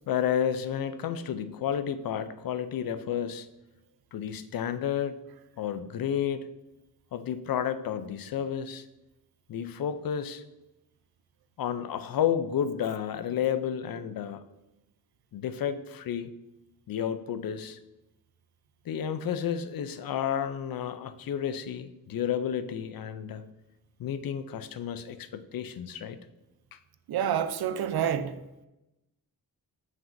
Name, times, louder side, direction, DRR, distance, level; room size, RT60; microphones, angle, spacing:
voice 1, 0.1-3.5 4.1-5.2 5.6-6.5 7.1-8.9 9.5-10.4 11.6-14.4 15.3-16.3 16.9-17.8 18.9-23.5 24.0-26.2 26.7-26.8, left 9 dB, 70° left, 0.5 m, -31 dB
voice 2, 27.1-28.3, right 9 dB, 90° right, 0.6 m, -28 dB
7.3 x 6.0 x 2.6 m
wide cardioid pair, 125°, 37 cm